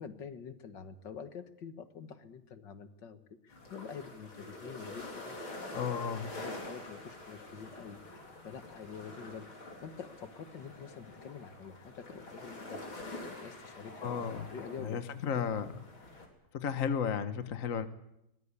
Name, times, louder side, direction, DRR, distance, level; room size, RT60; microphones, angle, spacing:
voice 1, 0.0-6.0 6.3-14.2 14.5-15.5, left 6 dB, 65° left, 9 dB, 2.1 m, -47 dB
sound 1, 3.5-16.3, left 2 dB, 85° left, 4.9 m, -46 dB
voice 2, 5.7-6.3 14.0-14.5 14.8-15.7 16.5-17.9, left 7 dB, 50° left, 10 dB, 1.3 m, -33 dB
22.0 x 20.0 x 8.3 m, 0.83 s
omnidirectional pair, 2.2 m